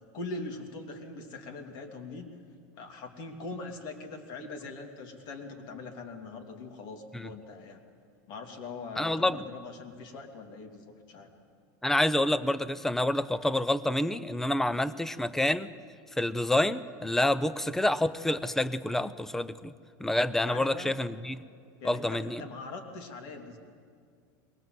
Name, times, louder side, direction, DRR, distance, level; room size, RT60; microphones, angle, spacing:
voice 1, 0.1-2.3 2.8-7.8 8.3-11.3 20.5-20.9 21.8-23.6, left 3 dB, 50° left, 4 dB, 2.7 m, -42 dB
voice 2, 9.0-9.4 11.8-15.7 16.2-19.7 20.0-21.4 21.8-22.4, left 1 dB, 5° left, 16 dB, 0.5 m, -28 dB
21.5 x 19.5 x 7.8 m, 2.2 s
supercardioid pair, 145°, 10 cm